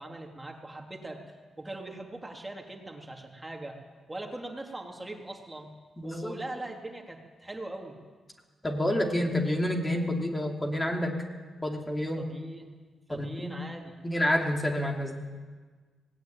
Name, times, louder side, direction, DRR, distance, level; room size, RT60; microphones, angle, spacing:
voice 1, 0.0-3.8 4.1-5.7 6.0-8.0 12.2-12.7 13.1-13.9, right 2 dB, 15° right, 2 dB, 3.1 m, -41 dB
voice 2, 6.0-6.4 8.6-11.2 11.6-12.3 13.1-13.6 14.0-15.1, left 1 dB, 15° left, 1 dB, 2.9 m, -28 dB
18.5 x 18.5 x 9.1 m, 1.4 s
cardioid pair, 85°, 0 cm